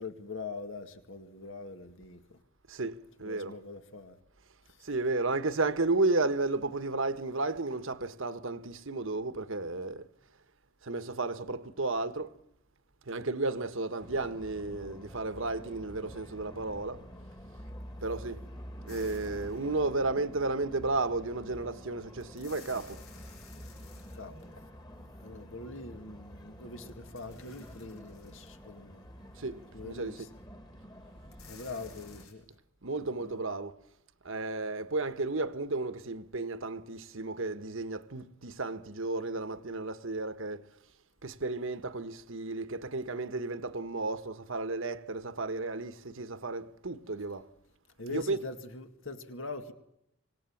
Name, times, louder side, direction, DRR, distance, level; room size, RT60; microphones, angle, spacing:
voice 1, 0.0-2.4 3.2-4.2 4.7-4.9 24.1-24.7 25.2-29.0 29.7-30.3 31.5-32.4 33.0-33.5 48.0-49.7, left 3 dB, 60° left, 2.1 m, -43 dB
voice 2, 2.7-3.5 4.8-10.1 10.8-12.3 13.1-17.0 18.0-18.4 18.9-23.0 29.4-30.2 32.8-33.7 34.2-40.6 41.2-47.4 48.1-48.4, right 3 dB, 60° right, 1.3 m, -33 dB
sound 1, 14.0-32.3, equal, 20° left, 2.3 m, -48 dB
sound 2, 18.9-20.1 22.2-24.9 26.9-28.8 29.3-29.4 31.2-32.3, left 5 dB, 80° left, 7.3 m, -55 dB
25.5 x 19.0 x 7.3 m
head